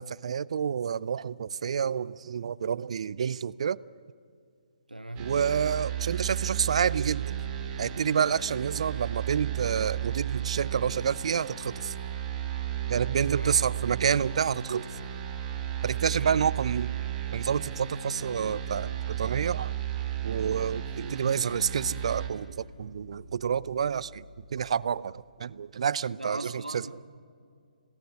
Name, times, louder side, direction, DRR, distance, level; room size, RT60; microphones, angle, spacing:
voice 1, 0.0-3.8 5.2-7.4 7.8-11.9 12.9-14.9 15.8-16.9 17.3-19.7 20.2-24.2 24.5-26.8, right 7 dB, 45° right, 22 dB, 0.5 m, -29 dB
voice 2, 4.9-5.3 13.3-13.7 16.1-16.5 26.1-27.0, right 1 dB, 80° right, 10 dB, 1.6 m, -39 dB
sound 1, 5.1-22.3, right 10 dB, 20° right, 2.5 m, -34 dB
sound 2, 6.8-24.5, left 2 dB, 40° left, 5.1 m, -52 dB
26.5 x 18.5 x 9.3 m, 2.3 s
figure-of-eight pair, 135°, 5 cm